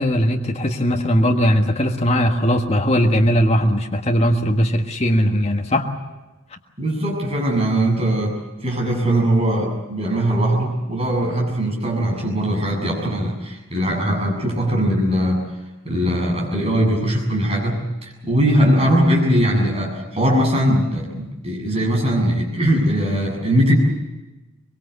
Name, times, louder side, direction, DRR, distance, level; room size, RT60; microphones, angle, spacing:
voice 1, 0.0-5.9, equal, 30° left, 2 dB, 1.7 m, -19 dB
voice 2, 6.8-15.4 15.8-23.8, right 1 dB, 30° right, -1 dB, 7.6 m, -20 dB
24.0 x 23.0 x 8.2 m, 1.1 s
head